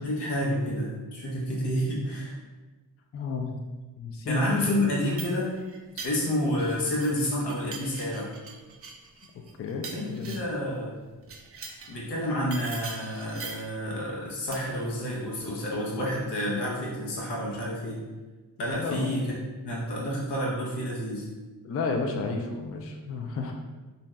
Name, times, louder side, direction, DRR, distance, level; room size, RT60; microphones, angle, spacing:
voice 1, 0.0-2.3 4.3-5.5 6.0-8.3 9.9-11.0 11.9-18.0 18.6-19.4 19.6-21.2, left 1 dB, 85° left, -4 dB, 0.9 m, -29 dB
voice 2, 3.1-3.6 4.0-4.8 9.6-10.3 18.7-19.0 21.6-23.5, left 3 dB, 35° left, 3 dB, 0.4 m, -32 dB
sound 1, 4.9-7.2 7.5-10.6 11.2-12.0 12.5-13.8 14.5-14.9, right 4 dB, 35° right, 0.4 m, -42 dB
2.6 x 2.1 x 3.4 m, 1.3 s
cardioid pair, 65°, 40 cm